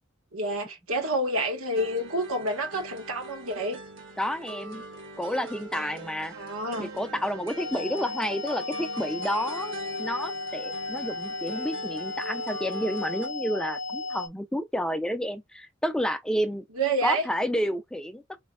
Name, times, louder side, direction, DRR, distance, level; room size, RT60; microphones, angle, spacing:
voice 1, 0.3-3.8 6.4-6.9 16.7-17.2, right 1 dB, 90° right, 1.5 m, -28 dB
sound 1, 1.8-13.3, right 1 dB, 60° right, 1.2 m, -42 dB
voice 2, 4.2-4.8 5.2-6.3 6.8-16.6 17.0-18.2, equal, 5° left, 0.3 m, -30 dB
sound 2, 7.6-14.3, left 3 dB, 60° left, 0.5 m, -35 dB
4.2 x 3.1 x 2.3 m
head